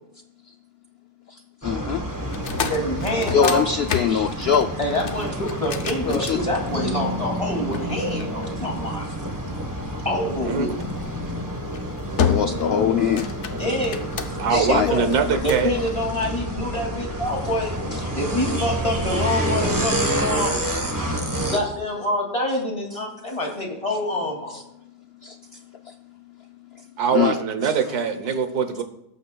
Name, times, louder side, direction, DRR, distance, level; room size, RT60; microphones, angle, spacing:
voice 1, 1.3-2.0 3.3-4.7 6.1-6.4 12.3-13.3 14.5-14.9 15.3-15.4 17.9-18.2 24.5-24.6 25.2-25.4 25.9-26.0 27.1-27.7, left 7 dB, 80° left, 7 dB, 0.5 m, -23 dB
sound 1, 1.6-21.6, right 1 dB, 15° right, 1.2 m, -29 dB
sound 2, 2.3-7.0 7.7-9.0 10.8-11.1 11.6-11.8 12.2-12.7 13.0-14.6 15.1-15.7, left 7 dB, 55° left, 1.0 m, -29 dB
voice 2, 2.6-3.7 4.8-9.1 10.0-10.8 13.6-14.0 14.5-15.1 15.4-17.8 18.1-20.6 21.5-24.6 27.9-28.0, left 1 dB, 20° left, -1 dB, 2.5 m, -26 dB
voice 3, 10.1-10.7 14.4-15.7 27.0-28.8, right 6 dB, 80° right, 9 dB, 1.5 m, -23 dB
17.5 x 8.4 x 2.3 m, 0.80 s
omnidirectional pair, 1.6 m